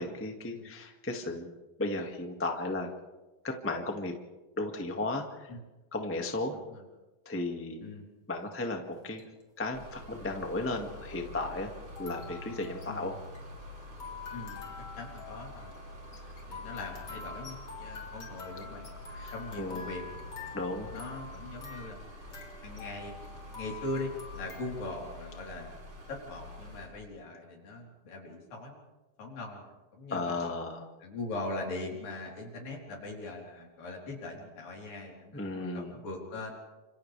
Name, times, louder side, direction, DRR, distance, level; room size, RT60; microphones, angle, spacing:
voice 1, 0.0-1.5 1.8-2.9 3.4-4.1 4.6-5.5 5.9-6.6 7.2-7.9 8.3-9.2 9.6-11.7 12.0-13.1 19.1-19.9 20.5-20.9 30.1-30.9 35.3-35.9, left 2 dB, 5° left, 2 dB, 1.0 m, -35 dB
voice 2, 6.5-6.8 7.8-8.1 12.9-13.1 14.3-14.7 15.0-15.8 16.5-18.9 19.3-20.0 20.9-22.0 22.6-23.1 23.6-25.8 26.1-28.9 29.2-30.5 31.0-36.6, left 2 dB, 75° left, -1 dB, 5.6 m, -41 dB
sound 1, 8.9-9.4 10.2-10.3 11.9-24.7, left 6 dB, 35° left, 3.7 m, -47 dB
sound 2, 9.7-26.9, left 1 dB, 40° right, 6.5 m, -47 dB
29.5 x 27.5 x 3.5 m, 1.1 s
omnidirectional pair, 4.0 m